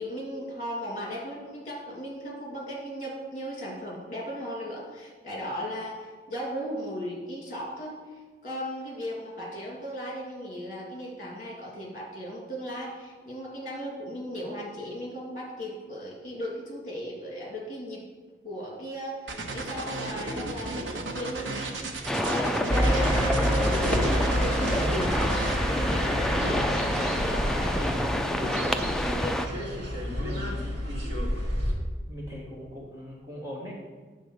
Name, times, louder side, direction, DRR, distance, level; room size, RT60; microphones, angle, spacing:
voice 1, 0.0-8.0 8.4-18.0 18.4-23.1 23.6-25.3 25.7-29.6, equal, 40° left, -3 dB, 2.5 m, -37 dB
sound 1, 19.3-25.6, right 3 dB, 85° right, 1.0 m, -34 dB
sound 2, 22.1-29.5, equal, 5° left, 0.3 m, -29 dB
sound 3, 22.7-31.7, equal, 70° right, 2.2 m, -28 dB
voice 2, 30.1-30.6 32.1-33.7, equal, 20° right, -5 dB, 1.6 m, -40 dB
9.2 x 4.0 x 6.5 m, 1.4 s
head